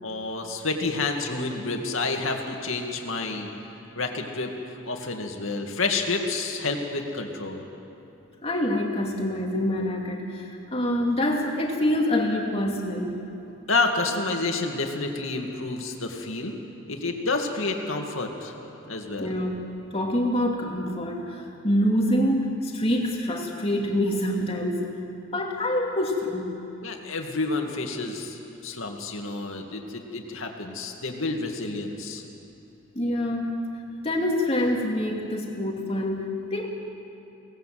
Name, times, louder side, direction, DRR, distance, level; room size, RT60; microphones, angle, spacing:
voice 1, 0.0-3.5 3.9-4.5 4.9-7.7 13.7-16.5 16.9-18.6 18.9-19.4 26.8-32.2, left 3 dB, 75° left, 3 dB, 2.4 m, -29 dB
voice 2, 8.4-13.1 19.2-19.6 19.9-24.9 25.3-26.6 32.9-33.6 34.0-36.7, left 1 dB, 30° left, 0 dB, 2.5 m, -26 dB
24.5 x 18.5 x 7.8 m, 2.8 s
head